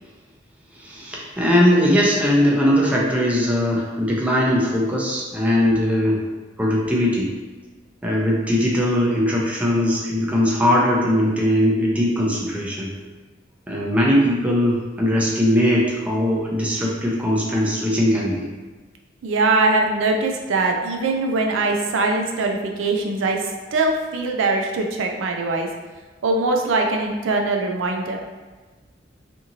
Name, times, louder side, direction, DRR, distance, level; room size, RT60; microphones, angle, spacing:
voice 1, 0.7-6.2 6.6-7.3 8.0-12.9 13.7-18.5, equal, 5° right, -4 dB, 0.4 m, -20 dB
voice 2, 19.2-23.4 23.7-25.7 26.2-28.2, right 3 dB, 85° right, 2 dB, 0.4 m, -22 dB
2.8 x 2.6 x 2.6 m, 1.3 s
head